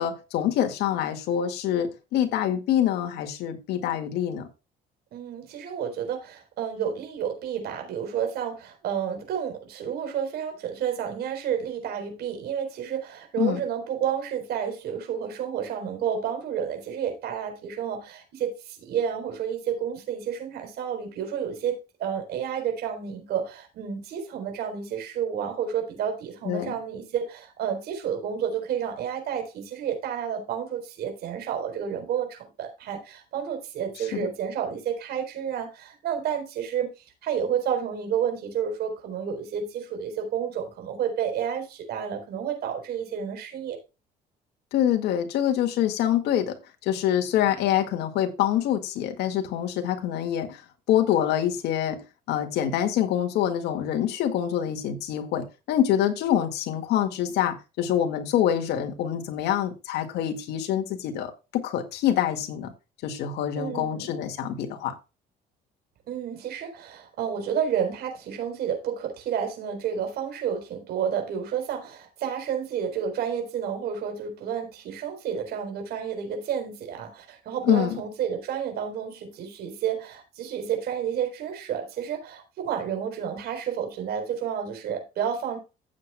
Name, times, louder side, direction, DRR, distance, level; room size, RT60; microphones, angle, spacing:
voice 1, 0.0-4.5 13.4-13.6 26.5-26.7 34.1-34.3 44.7-50.6 50.9-52.0 52.3-62.7 63.0-64.9 77.6-77.9, left 10 dB, 80° left, 2.0 m, -25 dB
voice 2, 5.1-36.9 37.2-43.8 63.6-64.1 66.1-85.6, right 8 dB, 70° right, 4.2 m, -30 dB
15.0 x 7.9 x 2.3 m
cardioid pair, 110°, 17 cm